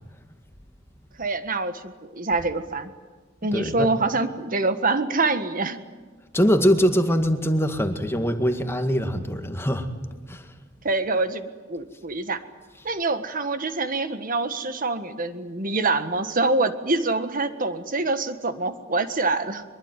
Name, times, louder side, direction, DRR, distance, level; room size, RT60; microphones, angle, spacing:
voice 1, 1.2-2.9 3.4-5.8 10.8-12.4 12.9-19.6, right 3 dB, 45° right, 10 dB, 1.6 m, -25 dB
voice 2, 3.5-3.9 6.3-9.9 10.3-10.5, equal, 10° left, 6 dB, 1.9 m, -22 dB
23.5 x 22.5 x 9.2 m, 1.4 s
head